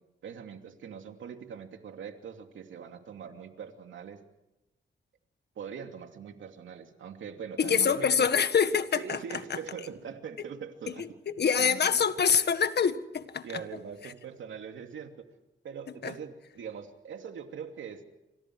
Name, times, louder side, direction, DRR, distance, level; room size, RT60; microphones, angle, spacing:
voice 1, 0.2-4.2 5.6-8.3 9.0-11.1 11.6-12.0 13.4-15.3 15.6-18.0, right 7 dB, 80° right, 2.8 m, -42 dB
voice 2, 7.6-9.2 11.0-13.4 16.0-16.1, left 6 dB, 60° left, 1.7 m, -25 dB
28.5 x 26.0 x 4.8 m
cardioid pair, 75°, 20 cm